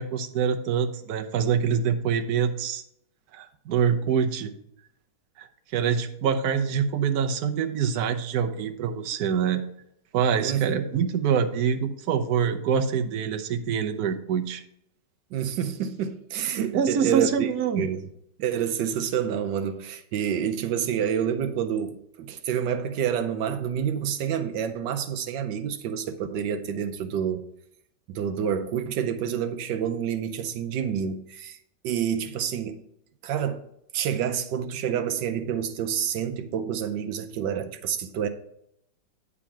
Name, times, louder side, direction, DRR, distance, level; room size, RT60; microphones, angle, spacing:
voice 1, 0.0-2.8 3.3-4.5 5.4-5.5 5.7-9.6 10.1-14.6 16.7-17.9, right 7 dB, 65° right, 1.2 m, -25 dB
voice 2, 10.4-10.8 15.3-17.5 17.8-18.1 18.4-27.4 28.1-31.6 31.8-32.8 33.2-33.7 33.9-38.3, right 8 dB, 85° right, 1.3 m, -28 dB
9.6 x 3.7 x 7.2 m
omnidirectional pair, 1.9 m